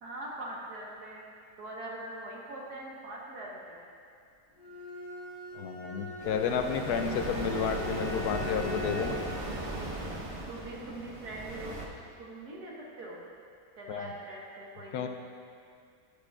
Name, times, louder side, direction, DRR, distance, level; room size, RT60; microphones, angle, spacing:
voice 1, 0.0-1.2 1.6-3.8 10.5-11.8 12.2-13.2 13.8-15.1, right 1 dB, 80° right, -4 dB, 1.9 m, -42 dB
Bowed string instrument, 4.6-9.4, left 4 dB, 30° left, 1.9 m, -42 dB
voice 2, 5.6-9.2 13.9-14.1 14.9-15.1, left 6 dB, 90° left, 6 dB, 1.1 m, -31 dB
sound 1, 6.2-11.9, right 1 dB, 30° right, 0.6 m, -37 dB
9.8 x 9.7 x 2.4 m, 2.4 s
omnidirectional pair, 1.6 m